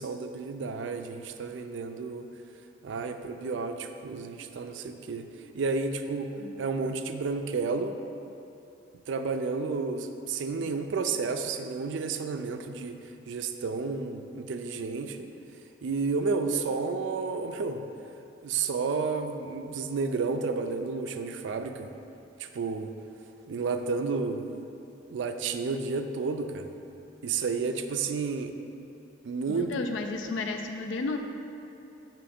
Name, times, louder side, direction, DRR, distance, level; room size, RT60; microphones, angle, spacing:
voice 1, 0.0-2.3 2.8-5.3 5.5-6.3 6.6-8.0 9.1-13.0 13.3-15.3 15.8-17.8 18.4-21.9 22.4-22.9 23.5-24.5 25.1-26.7 27.2-28.5 29.2-29.7, right 4 dB, 70° right, 7 dB, 0.4 m, -31 dB
voice 2, 29.5-31.2, left 3 dB, 75° left, 5 dB, 0.4 m, -33 dB
6.9 x 3.0 x 5.0 m, 2.8 s
head